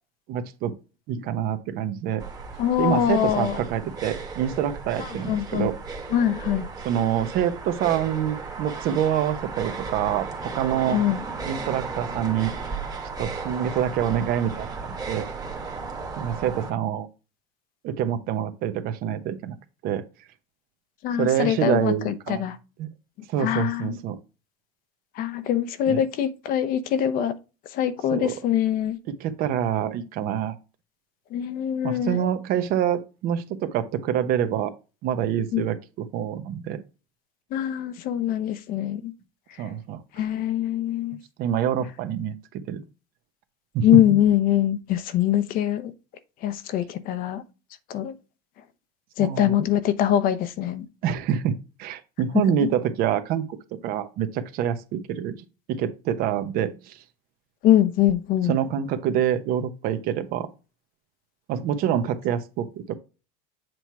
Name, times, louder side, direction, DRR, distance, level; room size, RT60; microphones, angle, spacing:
voice 1, 0.3-0.7 1.1-2.2 2.8-5.7 6.8-10.3 10.5-11.0 11.4-12.5 13.2-15.2 16.2-17.1 17.8-19.5 19.8-20.0 21.2-22.4 22.8-22.9 23.3-24.2 25.9-26.0 28.1-28.3 29.2-30.5 31.8-34.7 35.0-36.8 39.6-40.3 41.4-42.4 42.7-42.8 43.7-43.8 49.2-49.6 51.0-51.5 51.8-53.4 53.8-55.3 55.7-57.0 58.4-60.5 61.5-63.0, right 9 dB, 55° right, 0.9 m, -26 dB
sound 1, 2.2-16.7, right 4 dB, 20° right, 1.4 m, -35 dB
voice 2, 2.6-3.6 5.2-5.7 6.1-6.7 10.9-11.2 21.0-22.6 23.4-24.0 25.2-27.3 27.7-29.0 31.3-32.2 35.5-35.6 37.5-39.1 40.2-41.2 43.8-45.9 46.4-47.4 47.9-48.1 49.2-50.9 52.3-52.7 57.6-58.5, left 11 dB, 50° left, 0.8 m, -23 dB
7.8 x 3.0 x 4.6 m
supercardioid pair, 115°, 18 cm